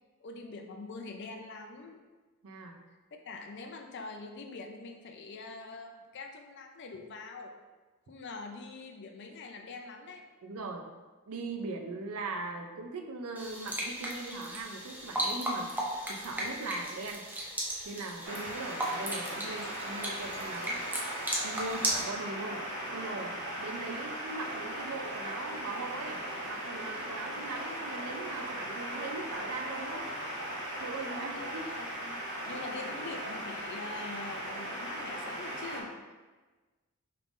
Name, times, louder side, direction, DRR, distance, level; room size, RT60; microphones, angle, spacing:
voice 1, 0.2-2.0 3.3-7.5 8.1-10.2 31.3-32.2 32.4-35.9, left 3 dB, 50° left, 4 dB, 0.4 m, -44 dB
voice 2, 2.4-2.8 10.4-10.8 11.3-15.8 16.1-17.2 17.8-20.8 21.4-22.6 22.9-30.1 30.8-31.7, right 3 dB, 75° right, 4 dB, 0.5 m, -40 dB
sound 1, 13.3-22.0, right 1 dB, 10° right, 0.5 m, -36 dB
sound 2, 18.2-35.8, right 1 dB, 55° right, 1.2 m, -38 dB
5.2 x 3.3 x 2.5 m, 1.3 s
head